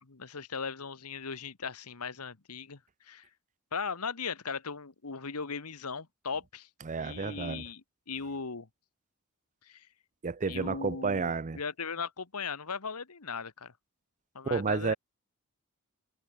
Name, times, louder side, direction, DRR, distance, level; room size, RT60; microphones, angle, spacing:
voice 1, 0.0-2.8 3.0-3.3 3.7-6.7 7.0-8.7 9.6-9.9 10.4-13.7 14.3-15.0, left 5 dB, 90° left, 1.5 m, -38 dB
voice 2, 6.8-7.6 10.2-11.6 14.5-14.9, right 4 dB, 35° right, 0.6 m, -31 dB
head